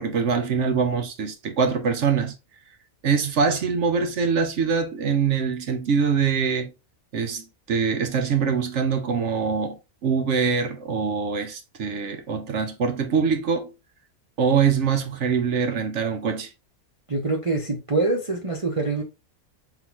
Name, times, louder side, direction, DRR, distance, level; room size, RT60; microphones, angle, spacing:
voice 1, 0.0-2.3 3.0-6.7 7.1-13.7 14.4-16.5, right 6 dB, 60° right, 1.0 m, -24 dB
voice 2, 17.1-19.0, right 3 dB, 30° right, 0.8 m, -25 dB
3.9 x 3.8 x 2.9 m
omnidirectional pair, 1.5 m